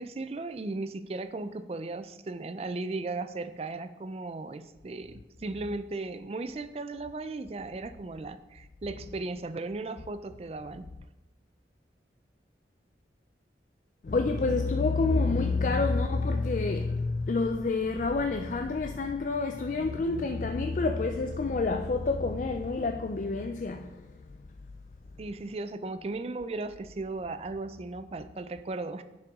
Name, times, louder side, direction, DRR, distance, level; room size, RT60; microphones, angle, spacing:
voice 1, 0.0-10.9 25.2-29.0, right 3 dB, 35° right, 0.4 m, -36 dB
voice 2, 14.0-24.1, left 3 dB, 45° left, 0.4 m, -28 dB
10.0 x 5.7 x 3.6 m
head